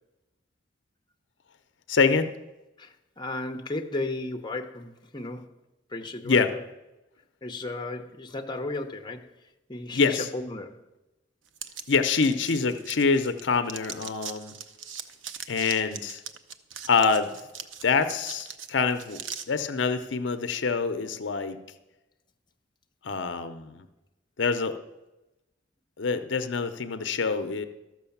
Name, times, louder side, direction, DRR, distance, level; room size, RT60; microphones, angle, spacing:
voice 1, 1.9-2.3 6.2-6.5 9.9-10.3 11.9-14.5 15.5-16.2 16.9-17.3 17.8-19.2 19.5-21.6 23.0-23.8 24.4-24.8 26.0-27.7, left 5 dB, 70° left, 9 dB, 0.6 m, -25 dB
voice 2, 2.8-5.5 5.9-6.6 7.4-9.3 9.7-10.8, left 2 dB, 25° left, 4 dB, 0.8 m, -34 dB
sound 1, 11.6-13.4 13.7-19.5, right 7 dB, 80° right, 0.7 m, -40 dB
13.0 x 6.2 x 7.1 m, 1.0 s
head